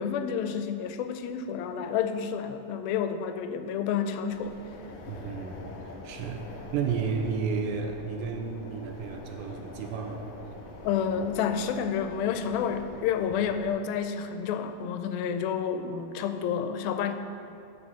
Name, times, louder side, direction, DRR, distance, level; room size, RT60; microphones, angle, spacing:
voice 1, 0.0-4.6 10.8-17.1, left 7 dB, 80° left, 8 dB, 2.3 m, -30 dB
sound 1, 4.3-13.8, left 2 dB, 65° left, 2.2 m, -44 dB
voice 2, 5.1-10.3, right 5 dB, 80° right, 3 dB, 2.3 m, -32 dB
8.8 x 6.7 x 7.0 m, 2.6 s
omnidirectional pair, 4.3 m